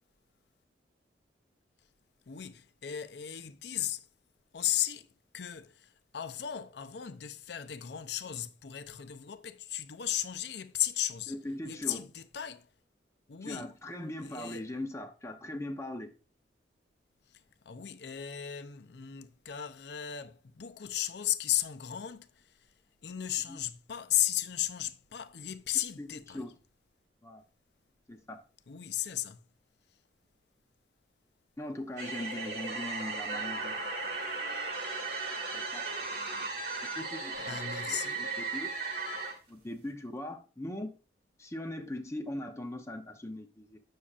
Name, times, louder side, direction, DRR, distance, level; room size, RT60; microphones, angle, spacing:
voice 1, 2.3-4.1 4.5-5.1 5.3-11.3 11.6-12.7 13.3-13.7 14.2-14.7 17.3-22.7 23.0-26.4 28.7-29.5 35.5-35.6 37.5-38.2, left 11 dB, 70° left, 0.5 m, -35 dB
voice 2, 11.3-12.0 13.4-16.1 23.5-23.6 26.0-26.1 26.3-26.5 27.2-27.4 28.1-28.4 31.6-34.0 35.5-35.8 36.8-38.7 39.5-40.9 41.4-43.8, left 1 dB, 15° left, 0.6 m, -40 dB
sound 1, 32.0-39.4, right 3 dB, 60° right, 1.6 m, -36 dB
8.5 x 6.5 x 2.4 m
head